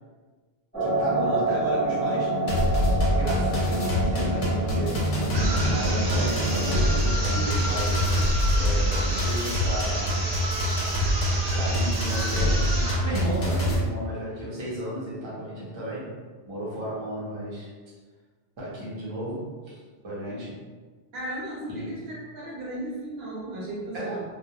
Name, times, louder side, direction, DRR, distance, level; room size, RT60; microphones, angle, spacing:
sound 1, 0.7-7.1, right 1 dB, 10° left, 0.6 m, -27 dB
voice 1, 0.8-2.4 3.2-5.1 5.3-6.8 7.2-10.2 11.5-16.1 16.4-17.7 18.6-20.6 21.7-22.0 23.9-24.2, equal, 30° right, -8 dB, 0.6 m, -34 dB
sound 2, 2.5-13.8, equal, 50° left, 0.7 m, -25 dB
sound 3, 5.3-13.1, right 1 dB, 80° right, 0.3 m, -31 dB
voice 2, 7.3-7.6 21.1-24.2, right 1 dB, 60° right, -7 dB, 0.9 m, -35 dB
2.3 x 2.1 x 2.8 m, 1.4 s
omnidirectional pair, 1.2 m